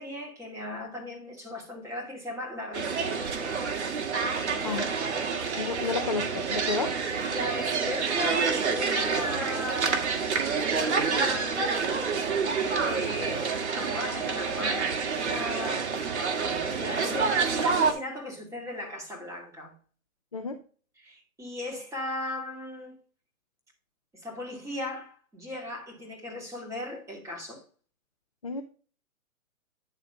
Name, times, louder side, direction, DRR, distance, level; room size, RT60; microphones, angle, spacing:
voice 1, 0.0-3.6 4.4-4.9 5.2-5.4 7.3-10.2 10.6-12.0 12.8-15.9 16.1-19.7 21.0-23.0 24.1-27.6, left 1 dB, 5° right, 2.8 m, -37 dB
sound 1, 2.7-17.9, right 5 dB, 50° right, 1.9 m, -28 dB
voice 2, 5.6-7.0 20.3-20.6 28.4-28.6, left 4 dB, 30° left, 0.3 m, -31 dB
10.0 x 4.0 x 5.2 m
hypercardioid pair, 140°, 42 cm